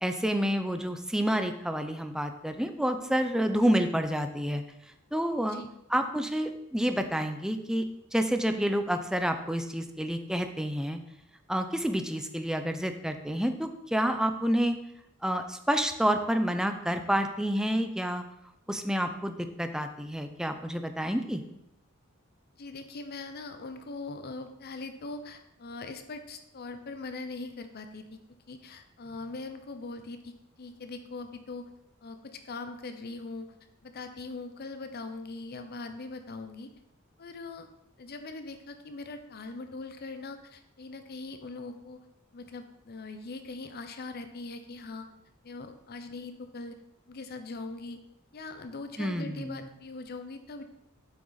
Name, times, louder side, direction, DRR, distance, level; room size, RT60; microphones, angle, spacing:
voice 1, 0.0-4.6 5.1-5.6 5.9-7.9 8.1-11.0 11.5-14.8 15.2-18.2 18.7-21.4 49.0-49.7, equal, 5° right, 7 dB, 0.5 m, -29 dB
voice 2, 22.6-28.2 28.5-30.3 30.6-31.6 32.0-33.5 33.8-36.7 37.2-37.7 38.0-42.0 42.3-45.1 45.4-46.8 47.1-48.0 48.3-50.6, left 3 dB, 50° left, 8 dB, 0.6 m, -41 dB
7.9 x 6.1 x 4.0 m, 0.82 s
head